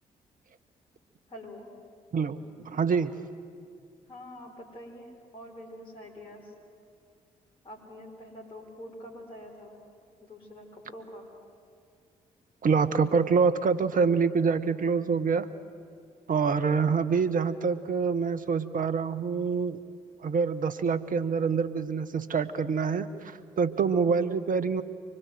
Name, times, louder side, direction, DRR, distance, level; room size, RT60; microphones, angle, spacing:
voice 1, 1.3-1.7 4.1-6.5 7.6-9.8 10.2-11.3, left 1 dB, 30° left, 0 dB, 4.9 m, -45 dB
voice 2, 2.6-3.1 12.6-15.5 16.3-19.8 20.2-24.8, right 5 dB, 50° right, 12 dB, 1.1 m, -26 dB
24.5 x 21.0 x 7.8 m, 2.2 s
hypercardioid pair, 40°, 18 cm